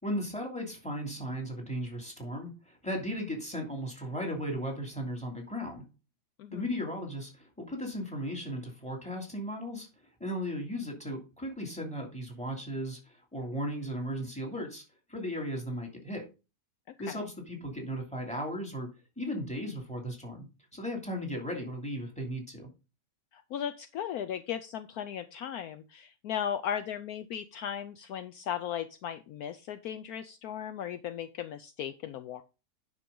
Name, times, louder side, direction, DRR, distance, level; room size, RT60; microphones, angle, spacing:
voice 1, 0.0-5.8 6.5-9.9 10.2-14.8 15.1-16.3 17.0-18.9 19.2-20.5 20.7-22.7, equal, 5° left, 1 dB, 2.6 m, -36 dB
voice 2, 6.4-6.7 17.1-17.2 23.3-32.4, left 9 dB, 70° left, 10 dB, 1.1 m, -37 dB
9.7 x 6.2 x 3.8 m, 0.29 s
omnidirectional pair, 1.7 m